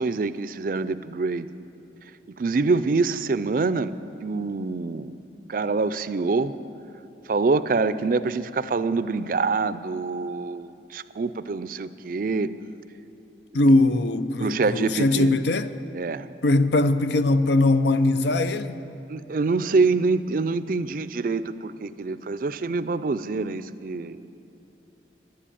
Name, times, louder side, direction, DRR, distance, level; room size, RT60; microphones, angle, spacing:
voice 1, 0.0-1.5 2.3-3.9 4.2-5.2 5.5-6.5 7.3-12.5 14.4-15.3 15.9-16.3 19.1-24.2, right 3 dB, 50° right, 0.4 m, -25 dB
voice 2, 13.5-15.7 16.4-18.8, left 2 dB, 75° left, 0.6 m, -21 dB
11.5 x 10.0 x 8.6 m
head